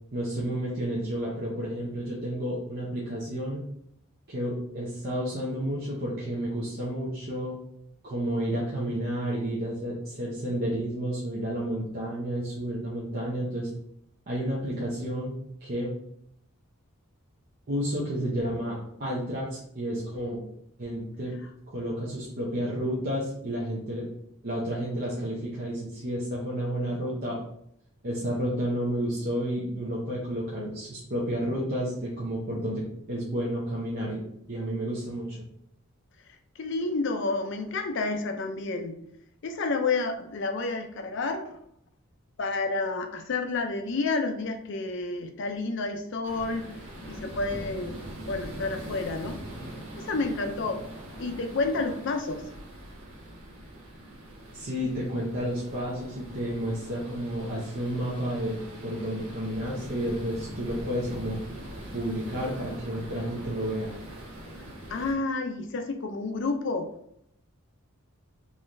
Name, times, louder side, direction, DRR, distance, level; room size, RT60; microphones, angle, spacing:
voice 1, 0.1-3.6 4.3-7.6 8.0-13.7 14.3-15.3 15.6-15.9 17.7-20.4 20.8-21.3 21.7-24.1 24.4-27.4 28.0-32.8 33.1-34.2 34.5-35.4 54.5-61.4 61.9-63.9, equal, 45° right, -6 dB, 0.7 m, -31 dB
voice 2, 36.6-39.0 39.4-41.6 42.4-46.7 47.0-48.0 48.3-49.4 50.0-50.8 51.2-52.5 64.9-66.9, left 3 dB, 55° left, 7 dB, 0.4 m, -30 dB
sound 1, 46.2-65.1, equal, 70° right, 1.1 m, -42 dB
3.8 x 3.0 x 2.6 m, 0.72 s
head